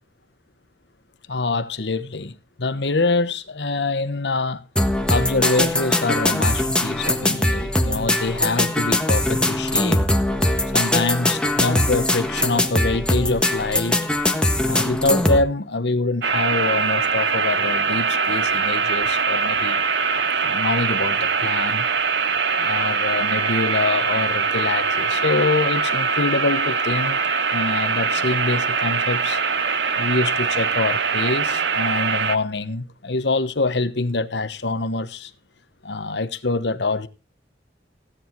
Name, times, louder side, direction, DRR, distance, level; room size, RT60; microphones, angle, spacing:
voice 1, 1.3-4.7 5.1-10.0 10.7-14.0 14.6-19.8 20.4-21.9 22.6-27.2 27.5-29.4 29.9-35.3 35.8-37.1, left 3 dB, 70° left, 1.1 m, -25 dB
sound 1, 4.8-15.4, left 1 dB, 5° left, 1.4 m, -21 dB
sound 2, 16.2-32.4, right 5 dB, 90° right, 1.0 m, -22 dB
16.0 x 10.0 x 4.6 m
head